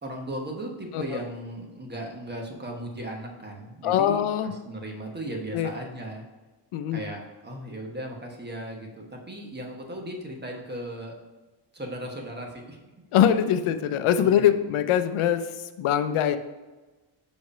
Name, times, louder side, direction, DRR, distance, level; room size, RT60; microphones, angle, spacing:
voice 1, 0.0-6.3 6.9-11.1 11.7-12.8 14.2-14.4 15.9-16.0, right 1 dB, 20° right, 1 dB, 1.1 m, -37 dB
voice 2, 3.8-4.5 5.5-5.7 6.7-7.0 13.1-16.4, left 9 dB, 90° left, 10 dB, 0.7 m, -23 dB
5.2 x 4.8 x 5.3 m, 1.2 s
cardioid pair, 135°, 48 cm